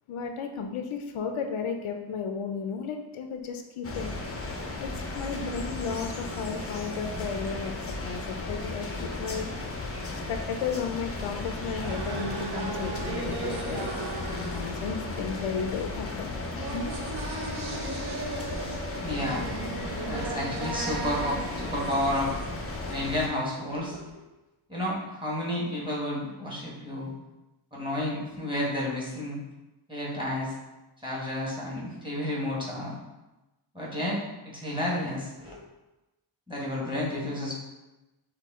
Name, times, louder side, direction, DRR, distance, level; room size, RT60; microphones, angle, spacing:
voice 1, 0.1-4.1 4.8-9.5 10.3-16.3 16.7-16.9 17.4-17.5, left 6 dB, 75° left, 5 dB, 0.5 m, -34 dB
sound 1, 3.8-23.3, left 2 dB, 30° left, 0.5 m, -35 dB
sound 2, 11.4-23.2, right 3 dB, 50° right, 0.6 m, -37 dB
voice 2, 18.9-19.5 20.0-22.3 22.9-24.2 24.7-27.1 27.7-29.4 29.9-30.5 31.0-32.9 33.7-35.6 36.5-37.5, left 1 dB, 10° right, -6 dB, 1.2 m, -31 dB
5.9 x 2.3 x 3.5 m, 1.0 s
wide cardioid pair, 145°, 50 cm